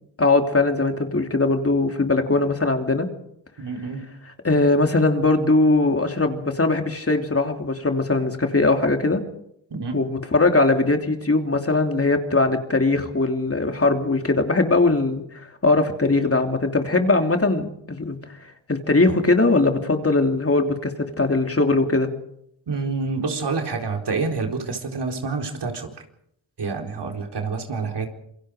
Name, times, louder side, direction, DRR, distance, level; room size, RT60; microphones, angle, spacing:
voice 1, 0.2-3.1 4.4-9.2 9.9-15.2 15.6-18.2 18.7-20.9 21.2-22.1, left 3 dB, 30° left, 5 dB, 3.1 m, -20 dB
voice 2, 3.6-4.0 9.7-10.0 22.7-25.9 26.6-28.1, right 4 dB, 60° right, 3 dB, 4.3 m, -27 dB
27.5 x 22.5 x 5.1 m, 0.73 s
cardioid pair, 65°, 46 cm